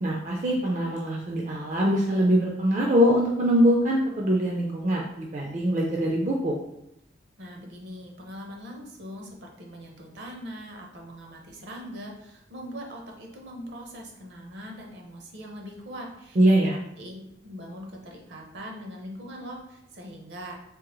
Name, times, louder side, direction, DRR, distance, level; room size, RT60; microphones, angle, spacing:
voice 1, 0.0-6.5 16.4-16.7, equal, 40° right, -1 dB, 0.4 m, -23 dB
voice 2, 7.4-20.6, equal, 65° right, 1 dB, 0.8 m, -41 dB
3.6 x 2.9 x 3.0 m, 0.84 s
head